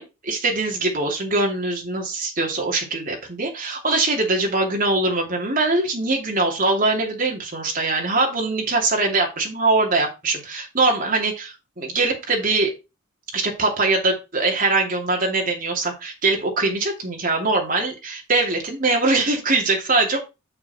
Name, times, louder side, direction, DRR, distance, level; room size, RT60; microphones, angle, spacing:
voice 1, 0.0-12.7 13.3-20.2, right 3 dB, 40° right, 1 dB, 2.7 m, -22 dB
7.0 x 6.8 x 4.3 m, 0.27 s
head